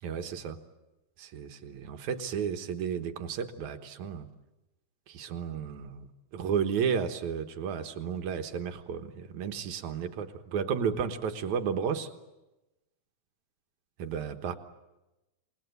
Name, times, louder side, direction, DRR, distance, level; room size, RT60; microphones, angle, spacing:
voice 1, 0.0-0.6 1.2-4.3 5.1-12.1 14.0-14.5, right 7 dB, 75° right, 7 dB, 2.6 m, -33 dB
28.0 x 19.5 x 9.4 m, 1.0 s
omnidirectional pair, 3.5 m